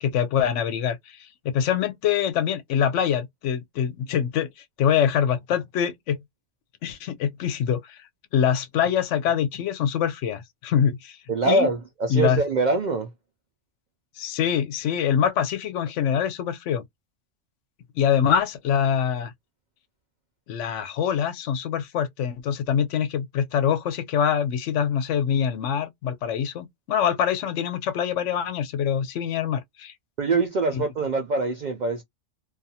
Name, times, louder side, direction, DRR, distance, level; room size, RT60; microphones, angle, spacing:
voice 1, 0.0-4.5 4.8-6.2 6.8-8.0 8.3-11.2 11.4-11.7 12.1-12.4 14.2-16.8 18.0-19.3 20.5-29.9 30.7-30.8, left 8 dB, 80° left, 0.9 m, -24 dB
voice 2, 11.3-13.1 30.2-32.0, right 3 dB, 65° right, 0.4 m, -24 dB
2.4 x 2.3 x 2.7 m
omnidirectional pair, 1.2 m